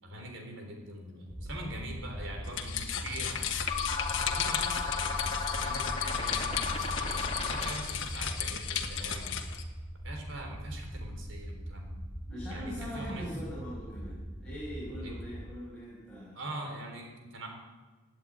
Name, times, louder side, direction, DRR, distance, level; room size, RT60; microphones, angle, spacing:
voice 1, 0.0-3.5 4.1-9.4 10.0-12.0 12.5-13.3 15.0-15.2 16.3-17.5, right 1 dB, 70° right, 2 dB, 3.8 m, -43 dB
sound 1, 1.3-15.5, equal, 15° right, 1.2 m, -41 dB
sound 2, 2.4-9.6, left 9 dB, 70° left, 1.5 m, -35 dB
sound 3, 3.7-8.1, left 4 dB, 25° left, 1.9 m, -34 dB
voice 2, 12.3-16.4, equal, 5° left, -9 dB, 5.8 m, -41 dB
17.5 x 9.3 x 8.8 m, 1.3 s
head